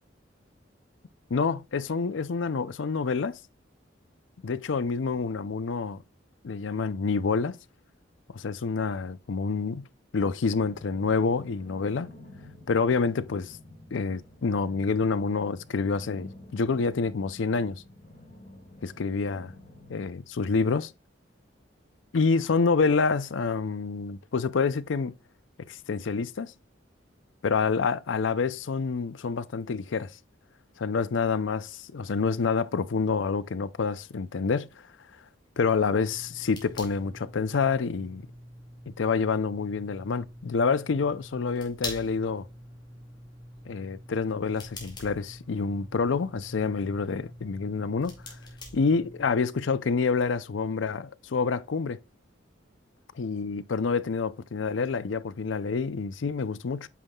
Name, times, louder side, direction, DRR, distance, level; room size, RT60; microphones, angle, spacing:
voice 1, 1.3-3.4 4.4-6.0 6.4-7.6 8.3-9.9 10.1-12.1 12.7-13.6 13.9-17.8 18.8-19.5 19.9-20.9 22.1-25.1 25.7-26.5 27.4-30.1 30.8-34.7 35.6-38.3 39.0-42.4 43.7-48.1 48.7-52.0 53.2-56.9, left 4 dB, 90° left, 0.5 m, -27 dB
sound 1, 10.5-20.1, left 1 dB, 40° left, 2.2 m, -49 dB
sound 2, 35.9-49.4, left 2 dB, 25° left, 2.3 m, -45 dB
8.4 x 5.5 x 2.3 m
head